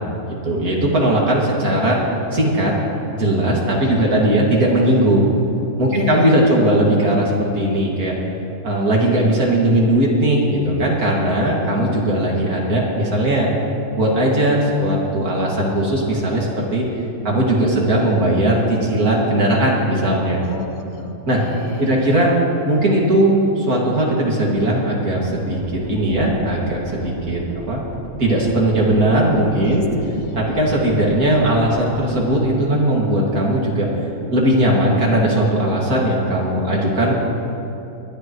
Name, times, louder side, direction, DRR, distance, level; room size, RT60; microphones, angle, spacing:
voice 1, 0.4-2.0 2.3-2.7 3.1-5.2 5.8-8.1 8.6-13.5 14.0-16.8 17.2-20.4 21.3-21.4 21.8-22.3 22.7-27.4 27.7-27.8 28.2-29.8 30.3-33.9 34.3-37.2, right 1 dB, 70° right, -3 dB, 2.8 m, -18 dB
voice 2, 3.8-4.2 5.9-6.6 20.4-22.0 29.6-30.4, left 3 dB, 70° left, 2 dB, 1.6 m, -32 dB
sound 1, 25.2-32.2, right 1 dB, 50° right, 2.3 m, -36 dB
21.5 x 12.0 x 3.1 m, 2.8 s
omnidirectional pair, 1.6 m